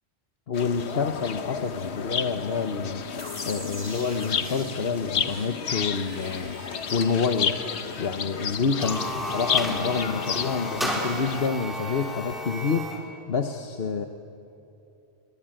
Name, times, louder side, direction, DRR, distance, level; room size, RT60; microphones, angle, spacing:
sound 1, 0.5-11.5, left 7 dB, 90° left, 1.3 m, -32 dB
voice 1, 0.5-3.1 3.4-7.5 8.0-14.1, left 5 dB, 65° left, 6 dB, 1.3 m, -28 dB
sound 2, 3.2-10.0, left 1 dB, 25° left, 3.5 m, -44 dB
sound 3, 8.6-13.0, equal, ahead, 4.4 m, -32 dB
27.5 x 23.5 x 9.1 m, 2.8 s
omnidirectional pair, 1.1 m